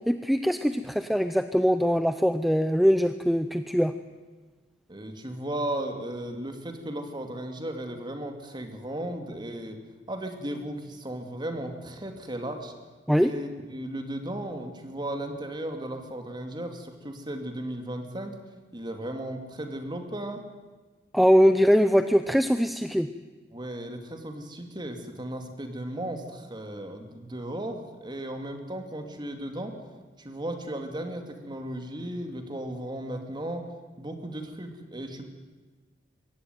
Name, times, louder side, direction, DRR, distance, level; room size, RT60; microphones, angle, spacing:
voice 1, 0.1-3.9 13.1-13.3 21.1-23.1, equal, ahead, 10 dB, 0.6 m, -22 dB
voice 2, 4.9-9.8 10.1-12.7 13.2-18.3 18.7-20.4 23.5-29.7 30.2-33.6 34.0-35.3, right 1 dB, 25° right, 5 dB, 2.5 m, -35 dB
22.5 x 17.0 x 9.5 m, 1.3 s
head